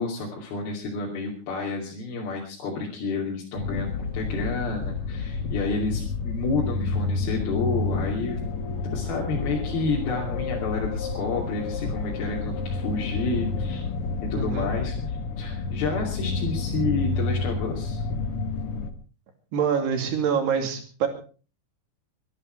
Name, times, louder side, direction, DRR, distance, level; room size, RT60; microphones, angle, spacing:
voice 1, 0.0-8.4 8.9-13.8 14.2-18.0, left 3 dB, 60° left, -3 dB, 4.5 m, -30 dB
sound 1, 3.5-18.9, left 4 dB, 90° left, 1.2 m, -29 dB
voice 2, 14.4-14.7 19.5-21.1, right 7 dB, 70° right, 5 dB, 4.5 m, -25 dB
23.5 x 11.5 x 4.6 m, 0.37 s
omnidirectional pair, 5.0 m